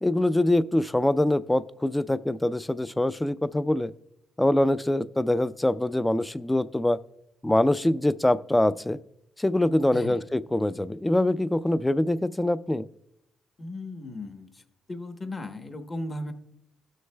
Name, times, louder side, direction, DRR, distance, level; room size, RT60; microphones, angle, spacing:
voice 1, 0.0-3.9 4.4-7.0 7.4-9.0 9.4-12.9, left 1 dB, 10° left, 16 dB, 0.4 m, -24 dB
voice 2, 9.9-10.2 13.6-14.6 14.9-16.3, left 1 dB, 25° left, 7 dB, 1.0 m, -36 dB
18.5 x 6.4 x 2.2 m, 0.78 s
cardioid pair, 90°, 0 cm